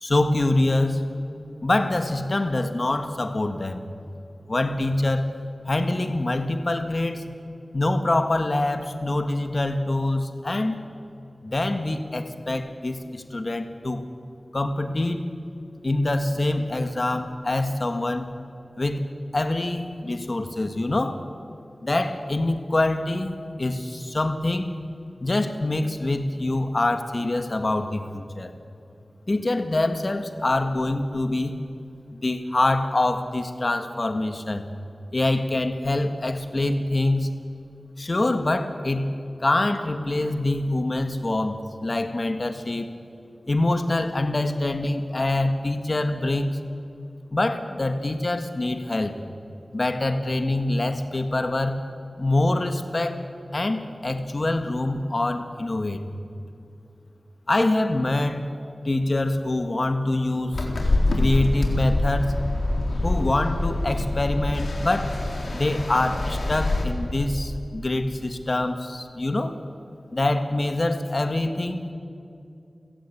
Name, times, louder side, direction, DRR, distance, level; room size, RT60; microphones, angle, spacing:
voice 1, 0.0-1.1 1.6-3.8 4.5-5.3 5.7-7.2 7.7-10.8 11.4-14.0 14.5-15.3 15.8-18.3 18.8-19.1 19.3-21.2 21.8-23.3 23.6-24.7 25.2-28.5 29.3-31.6 32.1-34.6 35.1-37.3 38.0-42.9 43.5-46.6 47.3-49.2 49.7-51.8 52.2-53.2 53.5-56.0 57.5-58.4 58.8-60.7 61.1-62.4 63.0-65.2 65.5-69.6 70.1-71.9, left 2 dB, 45° left, 7 dB, 1.8 m, -25 dB
sound 1, 60.5-66.8, left 2 dB, 80° left, 3.8 m, -25 dB
30.0 x 16.0 x 8.7 m, 2.6 s
wide cardioid pair, 80°, 0 cm